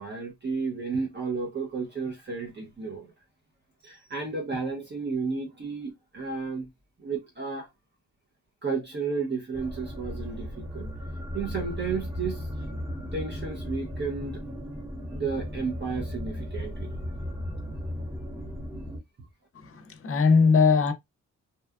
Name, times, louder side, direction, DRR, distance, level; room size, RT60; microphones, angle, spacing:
voice 1, 0.0-3.1 3.8-6.7 7.0-7.7 8.6-10.9 11.3-12.8 13.1-14.4 15.1-17.0 17.6-17.7 19.2-19.3, right 4 dB, 35° right, 0.6 m, -33 dB
sound 1, 9.5-19.0, equal, 10° right, 0.9 m, -36 dB
voice 2, 19.6-20.9, left 5 dB, 45° left, 0.6 m, -21 dB
2.7 x 2.2 x 2.2 m
wide cardioid pair, 110°, 31 cm